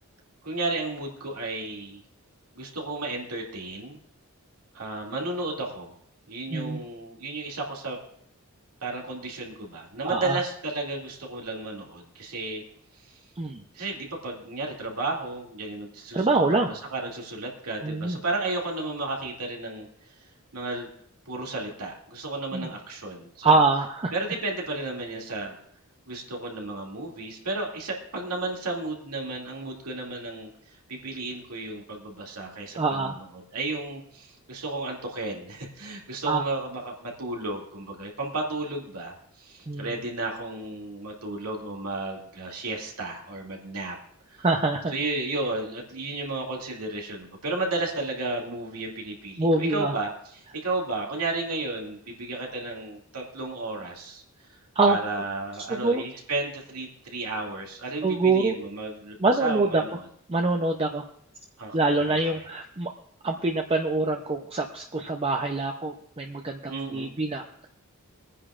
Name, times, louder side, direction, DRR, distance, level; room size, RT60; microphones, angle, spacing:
voice 1, 0.4-2.0 2.6-4.0 4.7-5.9 6.3-8.0 8.8-12.6 13.0-13.2 13.7-19.9 20.5-20.9 21.3-23.6 24.1-25.6 26.1-44.0 44.3-44.5 44.9-54.2 54.9-60.1 61.6-62.4 66.7-67.1, right 2 dB, 90° right, -1 dB, 2.4 m, -33 dB
voice 2, 10.0-10.4 13.4-13.6 16.1-16.7 17.8-18.2 22.5-22.7 23.4-24.1 32.8-33.1 36.3-36.4 39.7-39.9 44.4-44.9 49.4-49.9 54.8-55.0 55.7-56.0 58.0-58.5 59.2-59.8 60.3-61.0 61.7-62.9 63.2-67.7, right 3 dB, 25° right, 3 dB, 0.6 m, -24 dB
22.5 x 9.9 x 2.5 m, 0.66 s
head